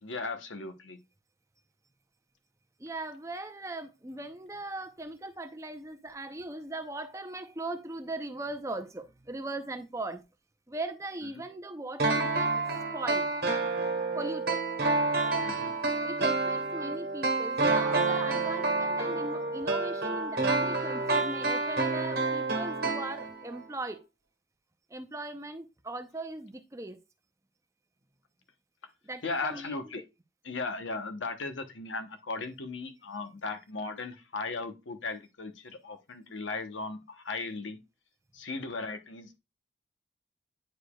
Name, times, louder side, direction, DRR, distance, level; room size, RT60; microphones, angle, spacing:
voice 1, 0.0-1.0 15.4-15.8 29.2-30.0 30.4-37.8 38.3-39.4, left 3 dB, 80° left, 0.9 m, -37 dB
voice 2, 2.8-10.2 10.7-12.6 12.9-13.3 14.1-14.6 16.0-24.0 24.9-27.0 29.0-29.8, right 2 dB, 15° right, 0.6 m, -39 dB
sound 1, 12.0-23.6 23.9-24.0, right 3 dB, 55° right, 1.3 m, -29 dB
9.1 x 4.9 x 2.3 m
head